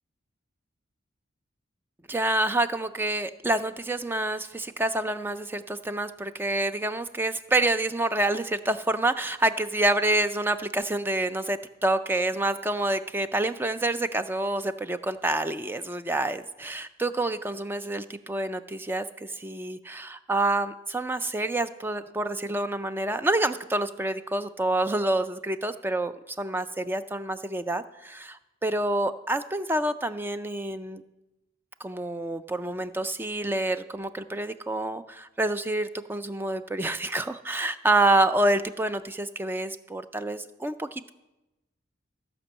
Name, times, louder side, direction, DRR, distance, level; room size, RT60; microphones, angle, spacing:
voice 1, 2.1-31.0 31.8-41.1, right 2 dB, 10° right, 11 dB, 0.3 m, -27 dB
15.0 x 5.3 x 7.3 m, 1.0 s
head